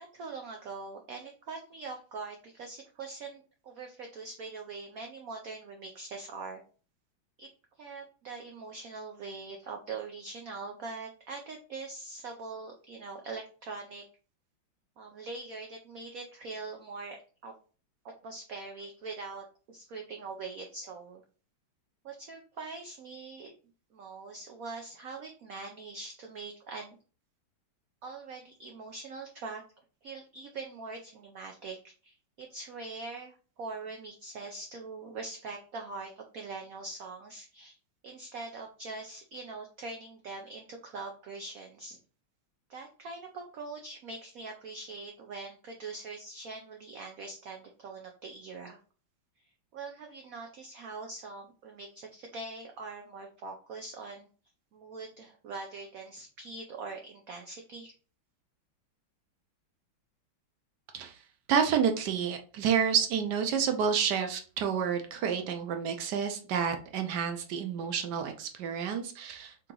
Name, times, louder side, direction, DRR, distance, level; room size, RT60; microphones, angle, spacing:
voice 1, 0.0-6.6 7.4-7.5 7.8-14.1 15.0-17.5 18.0-21.2 22.0-23.5 23.9-27.0 28.0-29.6 30.0-37.8 38.0-42.0 42.7-48.8 49.7-54.3 54.7-57.9, right 3 dB, 90° right, 3 dB, 0.7 m, -43 dB
voice 2, 61.5-69.7, right 7 dB, 70° right, 6 dB, 1.1 m, -29 dB
3.8 x 2.9 x 3.7 m, 0.38 s
omnidirectional pair, 2.2 m